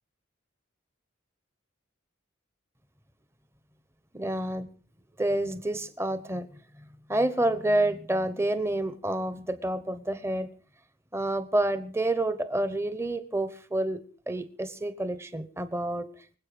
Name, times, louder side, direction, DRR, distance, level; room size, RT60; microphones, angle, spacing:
voice 1, 4.1-4.7 5.2-6.5 6.8-10.5 11.1-16.1, right 1 dB, 15° right, 12 dB, 0.9 m, -29 dB
25.0 x 8.3 x 5.1 m, 0.42 s
head